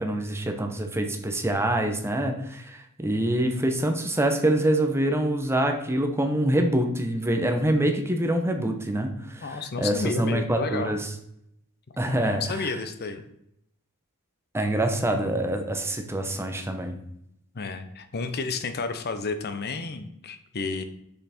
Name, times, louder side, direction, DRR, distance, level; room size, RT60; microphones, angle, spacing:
voice 1, 0.0-11.1 12.0-12.7 14.5-16.9, right 1 dB, 10° right, 4 dB, 0.9 m, -25 dB
voice 2, 9.4-11.0 12.0-13.2 17.5-20.8, left 4 dB, 45° left, 9 dB, 0.7 m, -31 dB
6.7 x 5.8 x 4.3 m, 0.75 s
head